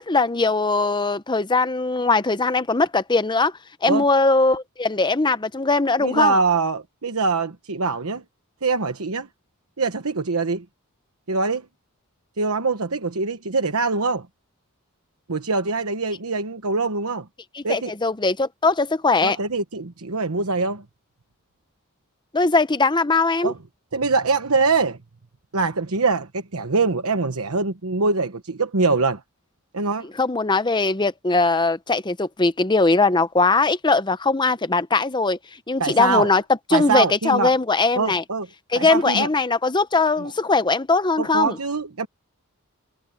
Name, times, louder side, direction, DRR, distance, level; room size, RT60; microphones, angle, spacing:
voice 1, 0.0-3.5 3.8-6.4 17.5-19.4 22.3-23.5 30.2-35.4 35.7-36.4 36.7-38.2 38.7-41.6, left 3 dB, 20° left, 0.8 m, -20 dB
voice 2, 6.0-8.2 8.6-9.3 9.8-10.6 11.3-11.6 12.4-14.3 15.3-17.3 17.6-17.9 19.2-20.8 23.4-23.6 23.9-25.0 25.5-29.2 29.7-30.1 35.8-36.3 36.7-37.5 38.0-38.5 38.7-39.3 40.2-40.3 41.2-42.1, right 4 dB, 70° right, 1.1 m, -23 dB
head